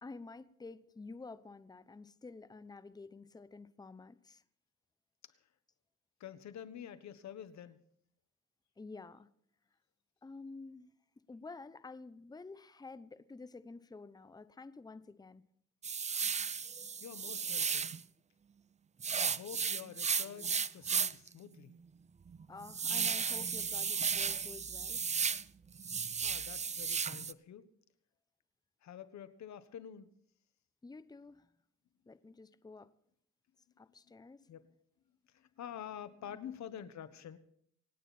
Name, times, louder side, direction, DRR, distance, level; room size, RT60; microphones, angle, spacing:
voice 1, 0.0-4.4 8.8-9.3 10.2-10.9 11.3-15.4 22.5-25.0 30.8-31.5 32.1-32.9 33.8-34.5 36.3-36.4, left 3 dB, 15° left, 14 dB, 0.8 m, -50 dB
voice 2, 6.2-7.8 17.0-17.9 19.1-21.7 26.2-27.7 28.8-30.1 34.5-34.7 35.3-37.4, left 9 dB, 65° left, 12 dB, 1.4 m, -48 dB
sound 1, 15.8-18.0 19.0-21.3 21.7-21.8 22.3-25.4 25.7-27.3, right 6 dB, 25° right, 0.5 m, -34 dB
26.5 x 9.2 x 4.3 m, 0.66 s
cardioid pair, 90°, 30 cm